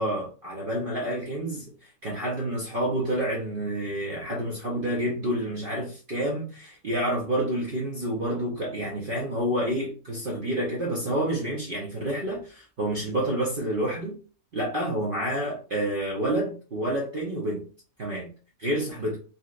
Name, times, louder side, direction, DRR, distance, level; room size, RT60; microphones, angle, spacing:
voice 1, 0.0-14.2 14.5-17.7 18.0-18.3 18.6-19.2, right 1 dB, 45° right, 0.8 m, -29 dB
3.9 x 3.0 x 2.4 m
omnidirectional pair, 1.6 m